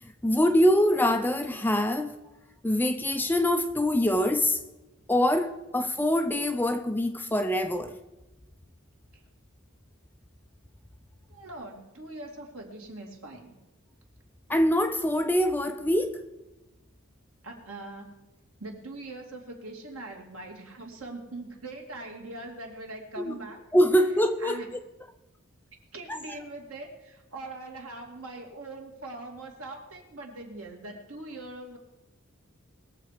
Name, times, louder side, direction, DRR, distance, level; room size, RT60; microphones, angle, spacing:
voice 1, 0.0-2.1 2.6-4.6 5.1-8.0 14.5-16.2 23.2-23.4 23.7-24.8 26.1-26.2, left 1 dB, 10° left, 0.5 m, -24 dB
voice 2, 11.3-13.5 17.4-18.2 18.6-23.6 24.4-24.7 25.9-31.8, right 2 dB, 80° right, 2.6 m, -42 dB
20.5 x 7.4 x 5.0 m
head